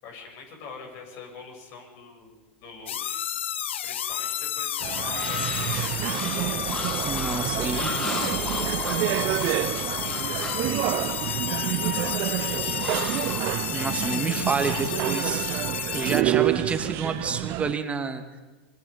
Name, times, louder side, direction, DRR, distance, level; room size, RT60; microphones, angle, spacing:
voice 1, 0.0-2.4 2.6-3.2 3.8-6.9 7.4-10.6 11.1-12.8, left 4 dB, 50° left, 2 dB, 7.2 m, -44 dB
sound 1, 2.9-16.2, left 10 dB, 75° left, 0.8 m, -31 dB
sound 2, 4.8-17.7, right 19 dB, 45° right, 0.6 m, -28 dB
sound 3, 5.1-10.7 12.8-14.0, left 2 dB, 20° left, 7.9 m, -36 dB
voice 2, 7.0-7.9 13.7-18.2, right 5 dB, 20° right, 6 dB, 2.4 m, -29 dB
26.5 x 22.5 x 5.4 m, 1.2 s
hypercardioid pair, 100°, 6 cm